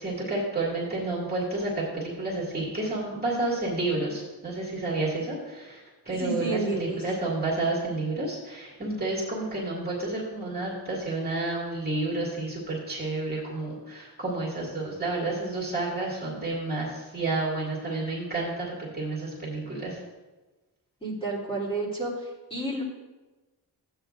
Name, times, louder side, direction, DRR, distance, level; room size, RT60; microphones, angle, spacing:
voice 1, 0.0-5.8 6.1-20.0, right 2 dB, 20° right, -6 dB, 2.3 m, -30 dB
voice 2, 6.2-7.0 21.0-22.1 22.5-22.8, right 2 dB, 15° left, -5 dB, 3.2 m, -30 dB
15.0 x 9.0 x 2.6 m, 1.2 s
wide cardioid pair, 150°, 42 cm